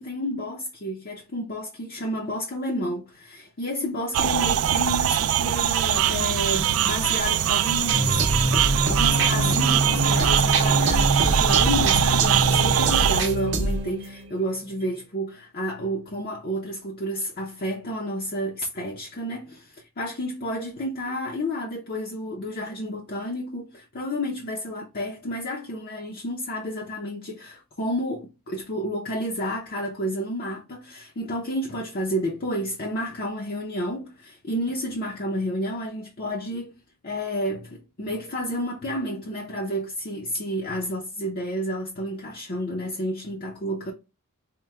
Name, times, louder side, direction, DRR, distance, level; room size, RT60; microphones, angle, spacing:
voice 1, 0.0-8.6 8.8-36.7 37.0-43.9, equal, 45° left, 0.6 m, -30 dB
sound 1, 4.1-13.2, right 10 dB, 70° right, 0.3 m, -22 dB
sound 2, 7.9-14.4, right 1 dB, 55° right, 0.7 m, -24 dB
4.4 x 2.2 x 3.5 m
head